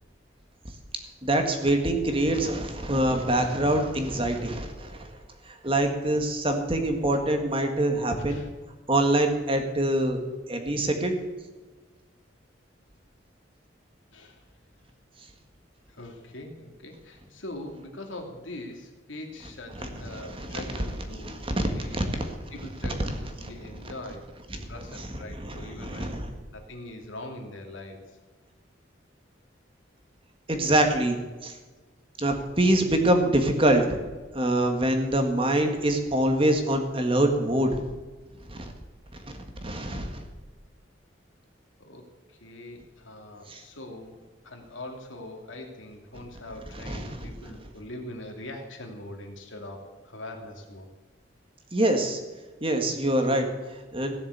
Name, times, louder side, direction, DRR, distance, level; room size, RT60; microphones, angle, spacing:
voice 1, 1.2-5.1 5.5-8.4 8.9-10.2 10.5-11.2 19.8-20.9 21.2-22.4 23.4-23.5 24.5-24.7 24.9-25.1 25.4-26.3 30.5-31.6 32.2-34.0 34.3-37.8 38.5-38.7 39.6-40.2 43.5-43.6 46.7-47.3 51.7-52.2 52.6-54.1, right 1 dB, 30° right, 5 dB, 1.7 m, -25 dB
voice 2, 15.9-22.0 22.5-24.3 24.7-26.1 26.5-28.2 41.8-50.9, left 1 dB, 85° left, 3 dB, 2.6 m, -42 dB
16.5 x 7.1 x 8.3 m, 1.3 s
head